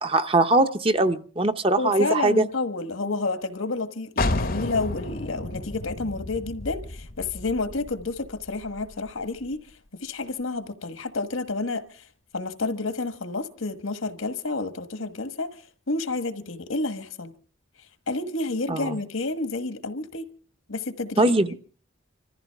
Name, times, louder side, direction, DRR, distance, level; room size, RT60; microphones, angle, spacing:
voice 1, 0.0-2.4 18.7-18.9 21.2-21.5, right 2 dB, 25° right, 0.7 m, -21 dB
voice 2, 1.8-9.6 10.0-12.0 12.3-17.3 18.1-20.3 20.7-21.4, left 3 dB, 80° left, 1.5 m, -30 dB
sound 1, 4.2-9.7, left 2 dB, 45° left, 0.8 m, -32 dB
25.5 x 14.5 x 3.5 m
head